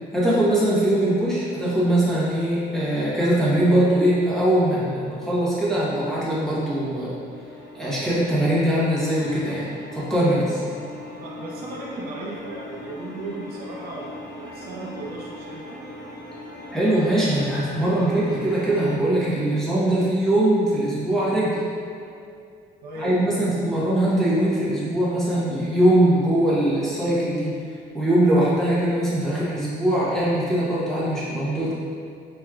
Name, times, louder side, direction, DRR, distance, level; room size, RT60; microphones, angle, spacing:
voice 1, 0.1-7.1 7.7-10.6 16.7-21.6 23.0-27.5 27.9-31.7, right 1 dB, ahead, -9 dB, 1.1 m, -21 dB
sound 1, 6.2-19.0, left 1 dB, 50° left, 0.9 m, -40 dB
voice 2, 11.2-15.8 22.8-23.5, right 2 dB, 65° right, -4 dB, 0.7 m, -36 dB
4.6 x 3.0 x 2.4 m, 2.4 s
cardioid pair, 110°, 17 cm